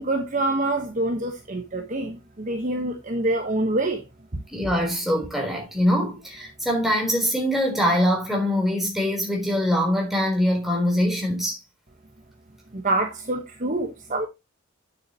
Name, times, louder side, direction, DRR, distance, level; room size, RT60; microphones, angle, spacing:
voice 1, 0.0-4.0 12.7-14.3, right 2 dB, 40° right, 1.2 m, -26 dB
voice 2, 4.5-11.6, equal, ahead, 3.7 m, -23 dB
9.0 x 7.5 x 2.9 m
head